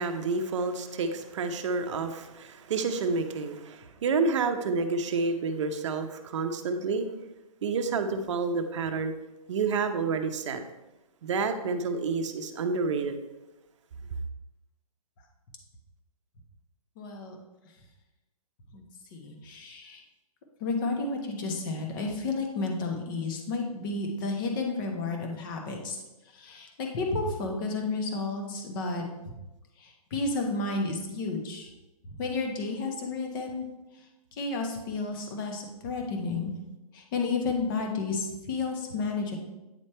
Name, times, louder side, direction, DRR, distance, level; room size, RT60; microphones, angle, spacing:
voice 1, 0.0-7.1 7.6-9.1 9.5-10.6 11.2-13.2, right 4 dB, 50° right, 7 dB, 0.7 m, -29 dB
voice 2, 17.0-17.4 18.7-20.0 20.6-29.0 29.8-31.7 32.0-33.7 33.9-36.5 36.9-39.4, left 3 dB, 35° left, 2 dB, 1.1 m, -32 dB
9.0 x 3.2 x 4.3 m, 1.0 s
hypercardioid pair, 155°, 19 cm